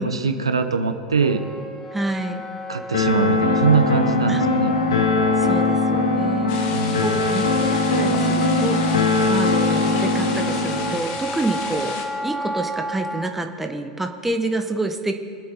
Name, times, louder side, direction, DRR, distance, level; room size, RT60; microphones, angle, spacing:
voice 1, 0.0-1.4 2.7-4.7 6.7-7.1, right 5 dB, 85° right, 8 dB, 0.9 m, -22 dB
Wind instrument woodwind instrument, 1.2-13.3, left 2 dB, 10° left, 1.3 m, -32 dB
voice 2, 1.9-2.4 4.3-4.4 5.4-6.6 7.0-8.8 9.3-15.2, right 2 dB, 10° right, 5 dB, 1.3 m, -28 dB
sound 1, 2.9-10.9, left 3 dB, 80° left, 1.6 m, -20 dB
sound 2, 6.5-12.0, left 5 dB, 50° left, 2.2 m, -34 dB
24.5 x 8.5 x 3.9 m, 2.5 s
hypercardioid pair, 90°, 3 cm